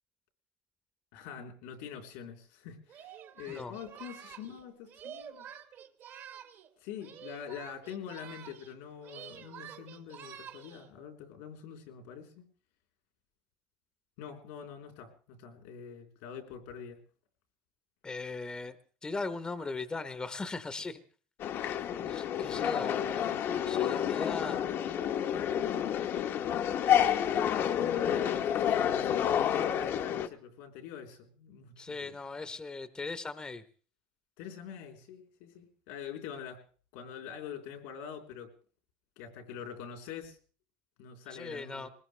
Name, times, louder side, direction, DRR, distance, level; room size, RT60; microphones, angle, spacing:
voice 1, 1.1-5.5 6.8-12.4 14.2-17.0 22.4-23.8 27.8-32.2 34.4-36.6 36.9-38.5 39.2-40.4 41.0-41.9, left 8 dB, 85° left, 3 dB, 3.6 m, -45 dB
Singing, 2.9-6.7 7.0-8.8 9.0-10.9, right 9 dB, 55° right, 2.1 m, -49 dB
voice 2, 18.0-18.8 19.0-21.0 21.6-21.8 22.1-23.4 23.7-24.6 31.8-33.6 41.3-41.9, left 3 dB, 15° left, 11 dB, 1.0 m, -39 dB
sound 1, 21.4-30.3, left 9 dB, 55° left, 1.1 m, -29 dB
21.5 x 19.5 x 3.3 m, 0.40 s
supercardioid pair, 115°, 5 cm